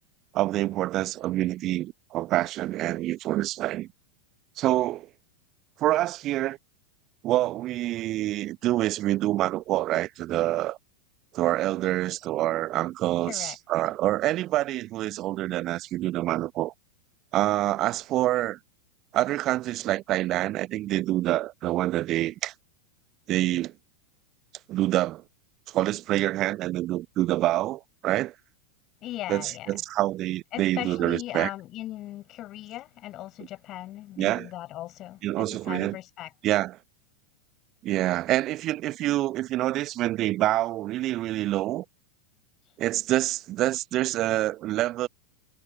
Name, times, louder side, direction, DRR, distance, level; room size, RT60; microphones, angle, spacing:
voice 1, 0.3-3.9 4.6-5.1 5.8-6.6 7.2-10.8 11.3-16.7 17.3-18.6 19.1-22.5 23.3-23.7 24.7-25.2 25.7-28.3 29.3-31.5 34.2-34.5 35.2-35.9 36.4-36.8 37.8-41.8 42.8-45.1, right 15 dB, 35° right, 1.0 m, -26 dB
voice 2, 29.0-29.8 30.5-36.3, left 14 dB, 35° left, 7.4 m, -38 dB
figure-of-eight pair, 90°, 0 cm